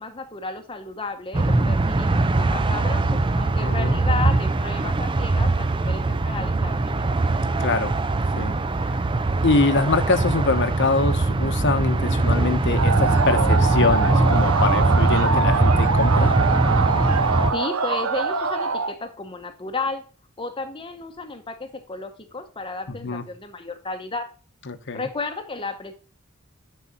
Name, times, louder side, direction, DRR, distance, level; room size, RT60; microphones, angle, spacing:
voice 1, 0.0-7.2 17.5-20.0 20.4-24.3 24.9-25.9, left 3 dB, 25° left, 6 dB, 0.9 m, -33 dB
sound 1, 1.3-17.5, right 2 dB, 25° right, 0.5 m, -21 dB
voice 2, 3.6-4.0 7.6-7.9 8.4-8.5 9.4-16.3 23.0-23.2 24.7-25.1, left 3 dB, 60° left, 9 dB, 1.0 m, -24 dB
sound 2, 12.8-18.9, right 4 dB, 90° right, 1.0 m, -24 dB
10.5 x 4.1 x 4.0 m, 0.37 s
head